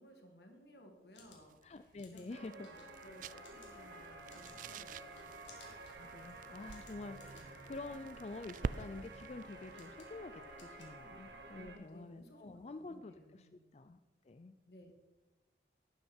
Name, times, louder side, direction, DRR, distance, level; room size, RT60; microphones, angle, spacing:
voice 1, 0.0-5.3 7.1-7.5 11.6-13.6 14.7-14.9, equal, 65° left, 3 dB, 2.1 m, -59 dB
sound 1, 0.9-11.6, left 5 dB, 85° left, 2.8 m, -64 dB
sound 2, 1.3-11.9, right 5 dB, 45° right, 0.3 m, -49 dB
voice 2, 1.6-2.7 5.6-14.0 14.2-14.5, left 3 dB, 35° left, 10 dB, 0.4 m, -48 dB
sound 3, 2.3-11.8, right 2 dB, 70° right, 1.8 m, -52 dB
11.5 x 11.5 x 4.4 m, 1.1 s
head